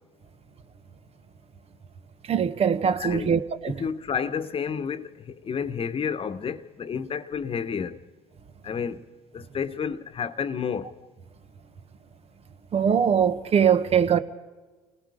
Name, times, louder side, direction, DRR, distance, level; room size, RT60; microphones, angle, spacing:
voice 1, 2.3-3.8 12.7-14.2, right 7 dB, 45° right, 1.2 m, -22 dB
voice 2, 3.0-3.4 3.6-5.1 5.4-8.0 8.6-9.0 9.3-10.9, left 6 dB, 40° left, 1.1 m, -30 dB
29.5 x 18.5 x 5.0 m
hypercardioid pair, 65°, 14 cm